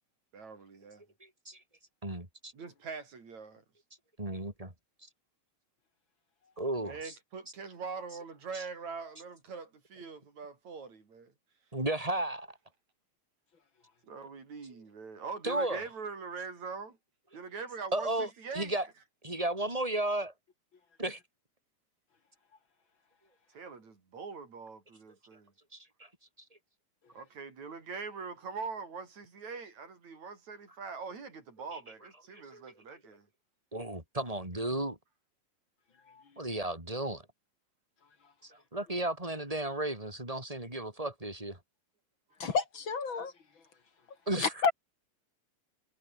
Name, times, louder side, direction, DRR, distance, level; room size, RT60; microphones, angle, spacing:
voice 1, 0.3-1.0 2.5-3.6 6.8-11.3 14.1-17.0 17.3-18.7 23.5-25.5 27.1-33.3, right 5 dB, 75° right, 5.9 m, -43 dB
voice 2, 2.0-2.5 4.2-4.7 6.6-7.1 8.5-8.6 11.7-12.6 15.4-15.8 17.9-18.3 18.5-18.9 19.2-20.3 21.0-21.2 25.7-26.1 31.7-31.8 32.3-32.6 33.7-35.0 36.4-37.2 38.4-41.6 44.3-44.6, right 1 dB, 10° right, 6.1 m, -34 dB
voice 3, 42.4-43.3 44.4-44.7, left 5 dB, 45° left, 2.9 m, -30 dB
omnidirectional pair, 3.3 m